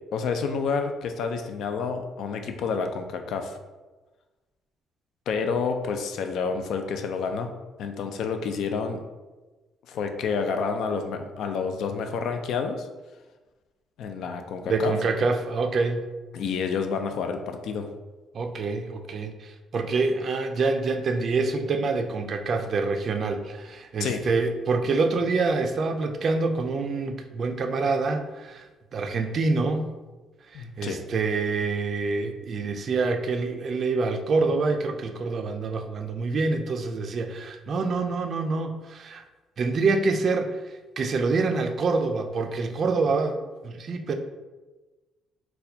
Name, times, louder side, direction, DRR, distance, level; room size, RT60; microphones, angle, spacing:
voice 1, 0.1-3.6 5.3-7.5 7.8-9.0 9.9-12.9 14.0-15.0 16.3-17.9 24.0-24.2 30.5-31.0, left 5 dB, 70° left, 5 dB, 0.3 m, -29 dB
voice 2, 14.7-16.1 18.3-28.6 28.9-29.9 30.8-39.2 39.6-40.6 41.0-43.4 43.6-44.1, right 3 dB, 45° right, 6 dB, 0.3 m, -26 dB
4.1 x 2.2 x 2.7 m, 1.2 s
cardioid pair, 115°, 0 cm